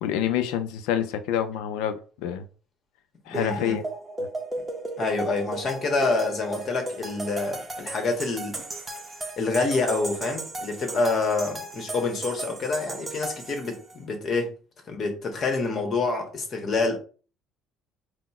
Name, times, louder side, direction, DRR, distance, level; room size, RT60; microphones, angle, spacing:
voice 1, 0.0-2.4 3.3-3.8 4.2-4.3, left 10 dB, 85° left, 0.5 m, -27 dB
voice 2, 3.3-3.8 5.0-8.6 9.4-14.5 14.9-17.0, left 3 dB, 40° left, 1.3 m, -27 dB
sound 1, 3.3-14.0, right 2 dB, 15° right, 0.9 m, -36 dB
4.2 x 2.2 x 4.2 m
cardioid pair, 115°, 0 cm